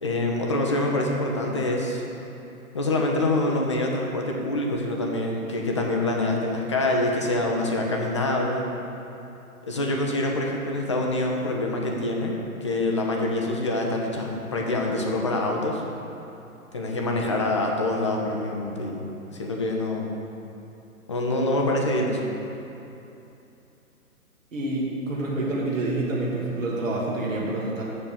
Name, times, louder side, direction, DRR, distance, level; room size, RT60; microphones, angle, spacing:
voice 1, 0.0-2.0 2.7-8.6 9.6-12.4 12.6-15.8 16.7-20.1 21.1-22.2, left 2 dB, 20° left, 0 dB, 0.5 m, -25 dB
voice 2, 24.5-27.8, right 2 dB, 60° right, -5 dB, 1.7 m, -27 dB
7.2 x 4.7 x 7.1 m, 2.9 s
figure-of-eight pair, 125°, 44 cm